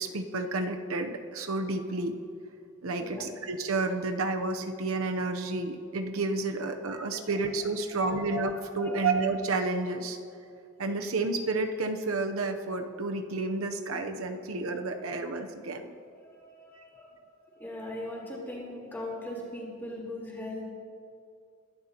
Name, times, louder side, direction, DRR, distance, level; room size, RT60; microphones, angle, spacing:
voice 1, 0.0-2.2 2.8-10.2 10.8-15.9, right 3 dB, 85° right, 5 dB, 0.8 m, -30 dB
voice 2, 7.8-8.3 8.8-9.1 14.8-15.1 16.2-17.1 17.4-20.7, left 1 dB, 10° left, -5 dB, 3.8 m, -40 dB
22.5 x 12.0 x 3.0 m, 2.4 s
head